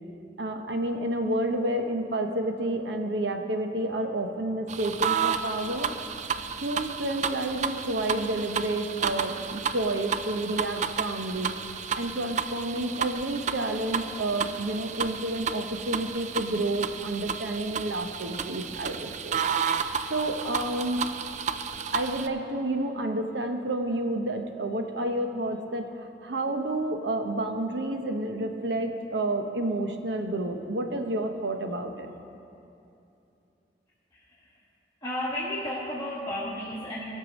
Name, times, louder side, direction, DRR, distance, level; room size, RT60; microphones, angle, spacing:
voice 1, 0.4-5.9 6.6-11.5 11.9-19.4 20.1-21.0 21.9-32.1, right 1 dB, 85° right, 5 dB, 0.9 m, -30 dB
sound 1, 4.7-22.3, right 6 dB, 40° right, 0.4 m, -32 dB
voice 2, 34.1-34.6 35.0-37.2, left 1 dB, 20° left, -8 dB, 1.3 m, -33 dB
17.0 x 6.7 x 5.2 m, 2.8 s
head